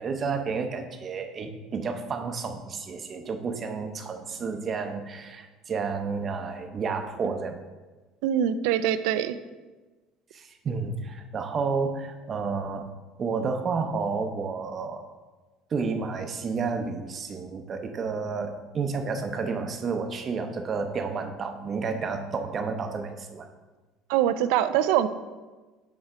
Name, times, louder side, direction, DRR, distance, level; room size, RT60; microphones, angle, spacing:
voice 1, 0.0-7.6 10.3-12.9 13.2-15.1 15.7-23.5, right 4 dB, 30° right, 6 dB, 0.6 m, -31 dB
voice 2, 8.2-9.4 24.1-25.1, right 10 dB, 80° right, 12 dB, 0.3 m, -23 dB
6.5 x 3.4 x 4.8 m, 1.3 s
cardioid pair, 135°, 0 cm